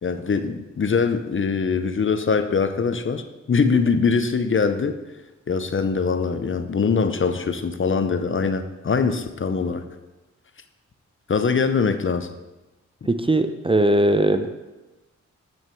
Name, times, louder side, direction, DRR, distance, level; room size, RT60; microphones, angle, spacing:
voice 1, 0.0-5.0 5.5-9.9 11.3-12.3, left 5 dB, 45° left, 9 dB, 0.7 m, -22 dB
voice 2, 13.1-14.5, right 1 dB, 20° right, 9 dB, 0.6 m, -19 dB
8.9 x 6.3 x 4.6 m, 1.1 s
cardioid pair, 65°, 30 cm